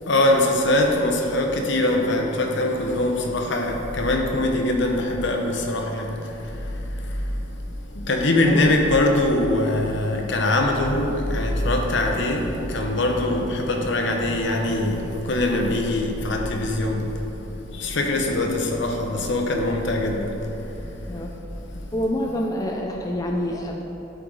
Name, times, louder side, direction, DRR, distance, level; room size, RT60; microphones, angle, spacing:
voice 1, 0.0-7.6 7.9-17.2 17.7-21.2 21.7-21.9, left 1 dB, 65° left, 2 dB, 0.9 m, -23 dB
voice 2, 21.9-23.8, left 1 dB, 20° left, 1 dB, 0.4 m, -27 dB
11.0 x 4.7 x 3.8 m, 3.0 s
head